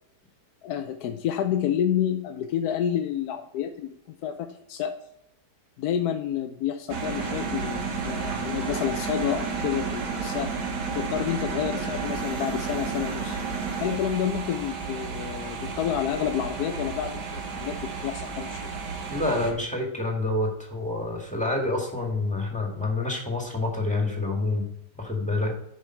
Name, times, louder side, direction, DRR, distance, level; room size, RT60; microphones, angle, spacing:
voice 1, 0.6-4.9 5.8-10.5 10.9-13.4 13.8-17.8 18.0-18.8, left 9 dB, 70° left, 6 dB, 1.1 m, -29 dB
sound 1, 6.9-19.5, right 5 dB, 85° right, 1.9 m, -32 dB
voice 2, 19.1-24.6 25.0-25.5, left 2 dB, 5° left, 0 dB, 1.7 m, -27 dB
8.2 x 5.3 x 4.4 m, 0.78 s
omnidirectional pair, 1.8 m